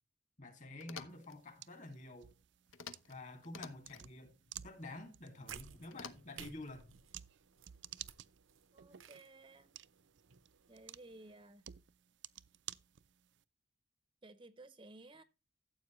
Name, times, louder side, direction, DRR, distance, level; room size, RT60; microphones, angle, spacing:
voice 1, 0.4-2.3 3.1-4.3 4.6-6.9, left 2 dB, 40° left, 2.3 m, -49 dB
sound 1, 0.8-1.4 2.7-3.2 3.4-4.1 5.9-6.5, left 6 dB, 85° left, 0.9 m, -50 dB
sound 2, 1.1-13.4, right 12 dB, 60° right, 0.4 m, -55 dB
sound 3, 5.4-11.3, right 8 dB, 85° right, 0.8 m, -57 dB
voice 2, 8.7-9.7 10.7-11.6 14.2-15.2, right 2 dB, 25° right, 0.7 m, -56 dB
14.0 x 7.9 x 3.0 m
head